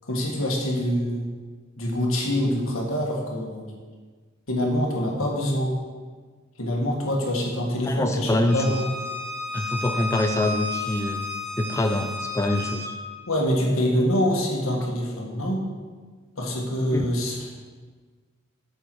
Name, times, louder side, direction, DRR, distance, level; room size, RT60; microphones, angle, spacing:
voice 1, 0.1-1.2 1.8-3.6 4.5-5.7 6.6-8.9 13.3-15.6 16.4-17.5, equal, 75° left, -1 dB, 1.8 m, -25 dB
voice 2, 7.8-8.8 9.5-11.2 11.6-12.9 16.9-17.1, left 1 dB, 15° left, 5 dB, 0.4 m, -25 dB
Bowed string instrument, 8.4-12.9, left 2 dB, 50° right, 1.5 m, -32 dB
8.3 x 6.9 x 4.7 m, 1.5 s
head